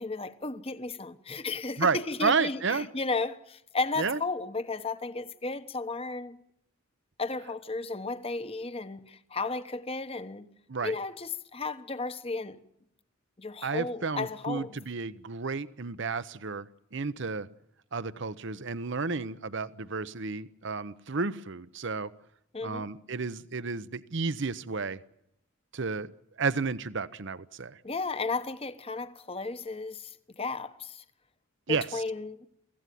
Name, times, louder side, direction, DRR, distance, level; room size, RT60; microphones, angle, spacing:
voice 1, 0.0-6.4 7.2-10.5 10.8-12.6 13.4-14.8 22.5-22.9 27.8-31.0 31.7-32.5, left 3 dB, 25° left, 1.1 m, -34 dB
voice 2, 1.8-2.9 4.0-4.2 10.7-10.9 13.6-16.7 16.9-17.5 17.9-22.1 22.6-25.0 25.7-26.1 26.4-27.8 31.7-32.0, right 4 dB, 60° right, 0.8 m, -31 dB
24.0 x 16.0 x 9.3 m
head